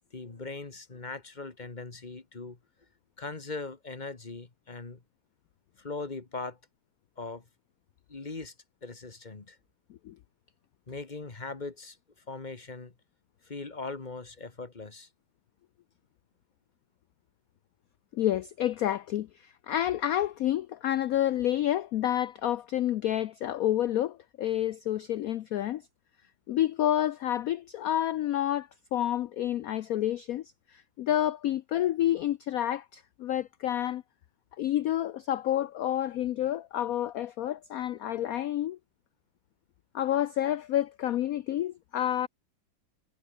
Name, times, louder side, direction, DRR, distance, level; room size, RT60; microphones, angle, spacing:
voice 1, 0.1-2.6 3.2-5.0 5.8-6.6 7.2-7.4 8.1-8.5 8.8-9.6 10.9-12.0 12.3-12.9 13.4-15.1, left 3 dB, 25° left, 1.7 m, -40 dB
voice 2, 18.1-25.8 26.5-34.0 34.6-38.8 39.9-42.3, left 12 dB, 75° left, 0.8 m, -29 dB
omnidirectional pair, 2.1 m